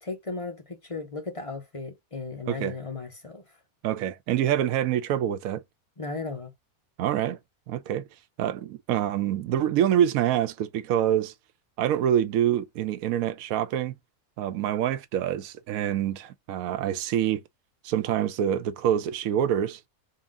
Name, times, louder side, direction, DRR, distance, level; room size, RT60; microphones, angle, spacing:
voice 1, 0.0-3.4 6.0-6.5, left 3 dB, 30° left, 0.7 m, -36 dB
voice 2, 3.8-5.6 7.0-7.4 7.7-8.1 8.4-11.3 11.8-13.9 14.4-17.4 17.8-19.8, right 10 dB, 75° right, 1.0 m, -26 dB
3.9 x 2.4 x 3.6 m
omnidirectional pair, 1.6 m